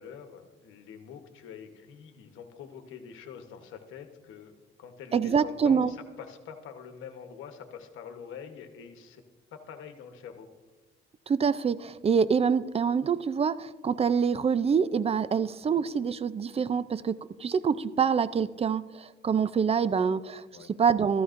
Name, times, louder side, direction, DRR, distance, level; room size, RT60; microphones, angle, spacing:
voice 1, 0.0-9.2 9.5-10.5 15.6-15.8 20.5-20.7, left 7 dB, 85° left, 6 dB, 1.1 m, -45 dB
voice 2, 5.1-5.9 11.3-20.4 20.7-21.2, right 6 dB, 30° right, 16 dB, 0.4 m, -26 dB
14.5 x 14.0 x 2.6 m, 1.3 s
cardioid pair, 90°, 20 cm